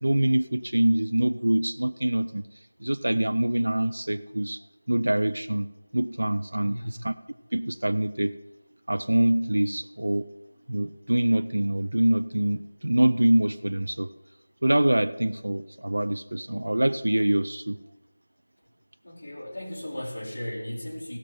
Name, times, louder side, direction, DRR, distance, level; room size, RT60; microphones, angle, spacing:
voice 1, 0.0-2.5 2.8-4.6 4.9-5.7 5.9-7.1 7.5-8.4 8.9-10.3 10.7-14.1 14.6-17.8, right 1 dB, 80° right, 10 dB, 0.6 m, -25 dB
voice 2, 6.6-7.0 19.0-21.2, equal, 40° left, -4 dB, 2.5 m, -36 dB
16.5 x 6.6 x 5.6 m, 1.1 s
figure-of-eight pair, 180°, 0 cm